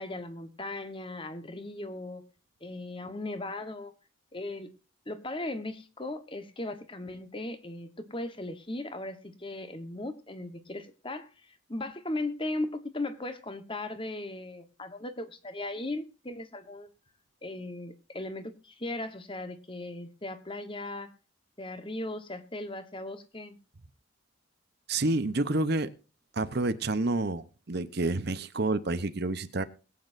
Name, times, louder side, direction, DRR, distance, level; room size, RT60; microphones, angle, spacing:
voice 1, 0.0-2.2 2.6-3.9 4.3-4.7 5.1-16.9 17.4-21.1 21.6-23.6, left 2 dB, 25° left, 1.2 m, -37 dB
voice 2, 24.9-25.9 26.3-29.6, right 2 dB, 50° right, 0.8 m, -29 dB
22.0 x 8.6 x 2.6 m
head